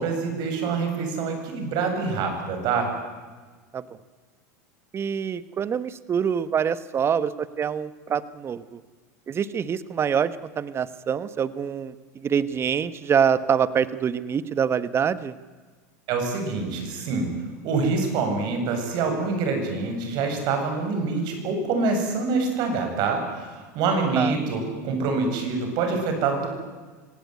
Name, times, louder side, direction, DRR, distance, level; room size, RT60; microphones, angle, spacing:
voice 1, 0.0-2.9 16.1-17.3 17.6-26.5, right 4 dB, 55° right, 5 dB, 7.6 m, -26 dB
voice 2, 4.9-8.8 9.3-15.3 24.2-24.3, right 7 dB, 30° right, 15 dB, 1.2 m, -25 dB
25.5 x 17.5 x 9.6 m, 1.4 s
hypercardioid pair, 100°, 9 cm